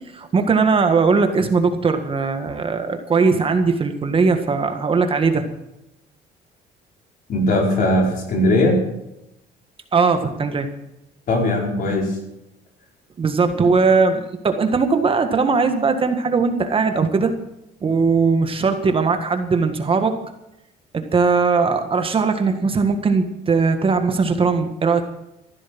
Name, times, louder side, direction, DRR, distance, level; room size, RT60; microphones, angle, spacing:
voice 1, 0.1-5.4 9.9-10.7 13.2-17.3 17.8-20.2 20.9-25.1, right 4 dB, 30° right, 7 dB, 1.7 m, -19 dB
voice 2, 7.3-8.8 11.3-12.2, left 1 dB, 55° left, 0 dB, 4.8 m, -19 dB
15.0 x 12.0 x 6.0 m, 0.85 s
cardioid pair, 110°, 17 cm